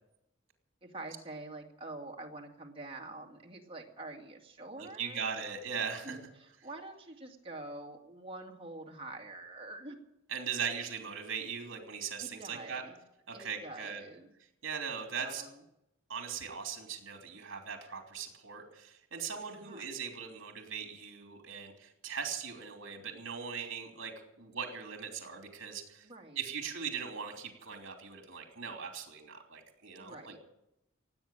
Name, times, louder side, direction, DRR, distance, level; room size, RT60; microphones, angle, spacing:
voice 1, 0.8-5.2 6.0-10.0 12.2-13.0 13.3-14.3 15.2-15.6 19.6-19.8 26.0-26.4 30.0-30.4, right 2 dB, 30° right, 1 dB, 2.2 m, -46 dB
voice 2, 4.8-6.2 10.3-12.8 13.3-14.0 14.6-15.5 16.1-26.1 26.3-30.4, right 6 dB, 70° right, 4 dB, 3.1 m, -40 dB
17.5 x 8.4 x 8.9 m, 0.85 s
head